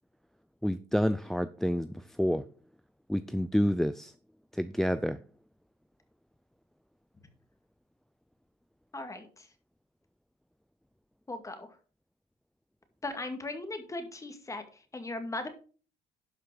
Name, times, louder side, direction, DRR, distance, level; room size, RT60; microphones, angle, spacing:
voice 1, 0.6-2.4 3.1-4.1 4.5-5.2, equal, ahead, 0.4 m, -29 dB
voice 2, 8.9-9.5 11.3-11.8 13.0-15.5, left 2 dB, 20° left, 2.2 m, -38 dB
11.5 x 5.8 x 5.0 m
cardioid pair, 110°, 17 cm